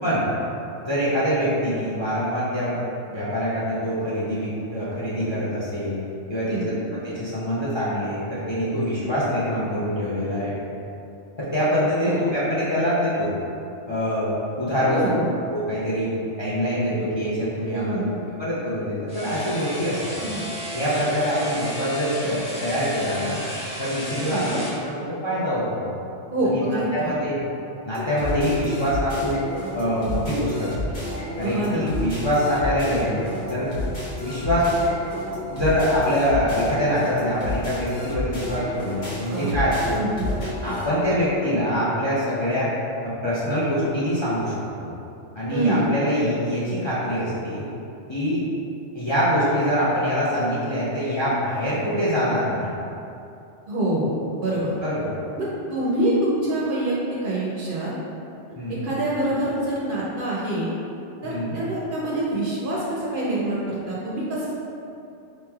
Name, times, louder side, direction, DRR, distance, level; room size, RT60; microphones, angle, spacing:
voice 1, 0.8-2.7 3.1-5.9 6.3-6.6 7.0-10.6 11.4-13.3 13.9-15.0 15.5-16.1 16.4-18.0 18.4-20.2 20.7-23.4 23.8-25.9 26.4-26.6 26.9-27.4 27.8-29.4 29.7-30.7 31.4-33.2 33.5-33.7 34.2-34.7 35.5-40.0 40.6-42.7 43.0-44.5 44.8-44.9 45.3-47.6 48.1-48.4 48.9-52.7 54.8-55.1 58.5-58.9 61.2-61.6, equal, 30° left, -10 dB, 0.5 m, -24 dB
voice 2, 6.4-6.8 12.1-12.2 14.9-15.3 17.7-18.0 20.2-20.5 24.2-24.6 26.3-27.1 31.4-32.0 39.3-39.6 40.0-40.2 45.5-46.0 53.7-54.1 54.4-54.7 55.4-57.9 58.5-60.7 61.2-64.5, right 1 dB, 55° right, -6 dB, 0.7 m, -26 dB
sound 1, 19.1-24.8, equal, 5° right, 1.2 m, -34 dB
sound 2, 27.9-40.9, left 1 dB, 80° left, 1.4 m, -31 dB
4.5 x 3.1 x 2.3 m, 2.7 s
omnidirectional pair, 1.2 m